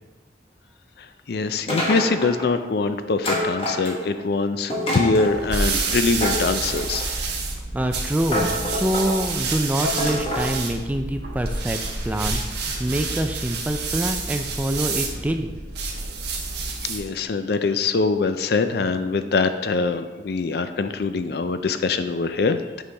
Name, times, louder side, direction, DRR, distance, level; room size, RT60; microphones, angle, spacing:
voice 1, 1.0-7.0 16.8-22.8, left 4 dB, 60° left, 10 dB, 0.4 m, -23 dB
sound 1, 1.7-2.5 3.2-4.2 4.7-5.4 6.2-7.1 7.8-7.9 8.3-9.1 9.8-10.5, left 1 dB, 30° left, 1.3 m, -26 dB
sound 2, 5.2-17.1, right 4 dB, 65° right, 1.1 m, -28 dB
voice 2, 7.7-11.8 12.0-15.5, right 1 dB, 10° right, 6 dB, 0.3 m, -25 dB
8.1 x 5.5 x 3.4 m, 1.2 s
head